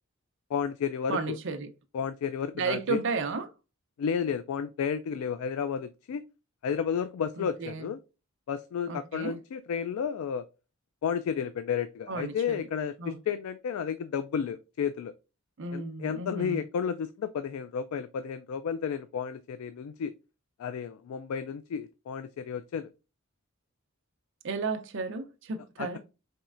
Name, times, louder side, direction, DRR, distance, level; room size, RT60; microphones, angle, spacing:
voice 1, 0.5-1.4 1.9-3.0 4.0-6.2 6.6-8.0 8.5-10.4 11.0-15.1 15.7-20.1 20.6-22.9 25.8-26.0, left 7 dB, 75° left, 0.3 m, -32 dB
voice 2, 1.1-1.7 2.5-3.5 7.4-7.9 8.9-9.4 12.1-12.7 13.0-13.2 15.6-16.6 24.4-26.0, right 4 dB, 60° right, 0.5 m, -33 dB
4.4 x 3.1 x 2.4 m
head